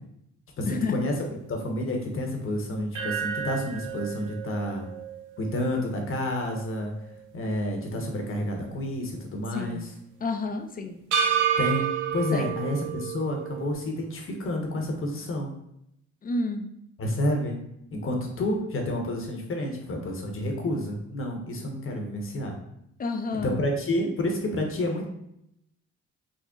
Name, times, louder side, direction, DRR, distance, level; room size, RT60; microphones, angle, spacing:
voice 1, 0.6-1.1 1.5-4.9 5.4-6.9 7.3-9.9 11.6-15.5 17.0-17.6 17.9-22.6 23.4-25.1, left 1 dB, 45° left, 2 dB, 0.9 m, -29 dB
sound 1, 2.9-7.2 7.6-7.7 11.1-13.7, right 8 dB, 85° right, 0.6 m, -30 dB
voice 2, 9.5-9.8 10.2-11.0 12.3-12.5 16.2-16.7 23.0-23.6, left 3 dB, 30° left, 5 dB, 0.4 m, -30 dB
3.8 x 2.0 x 3.6 m, 0.77 s
cardioid pair, 90°, 30 cm